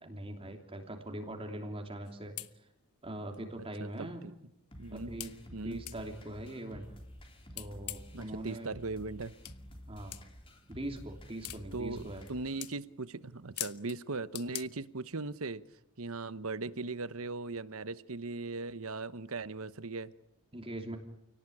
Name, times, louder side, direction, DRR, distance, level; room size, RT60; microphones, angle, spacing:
voice 1, 0.0-2.7 3.0-4.2 4.9-5.4 5.6-6.9 7.5-8.7 9.9-10.2 10.7-12.3 20.5-21.0, right 1 dB, 25° right, 3 dB, 3.1 m, -42 dB
sound 1, 2.1-2.2 2.4-2.5 3.3-3.4 3.9-4.0 5.2-5.3 5.9-6.0 7.5-8.2 9.5-9.6 10.1-10.2 11.4-11.6 12.2-12.3 12.6-12.8 13.6-14.0 14.4-14.6, left 15 dB, 85° left, 1.2 m, -41 dB
voice 2, 3.8-4.3 4.8-5.1 5.5-5.8 8.1-9.3 11.7-15.6 16.0-20.1, right 3 dB, 70° right, 14 dB, 1.1 m, -39 dB
sound 2, 4.7-12.7, equal, 25° left, 3.4 m, -51 dB
29.0 x 18.5 x 9.9 m, 0.81 s
head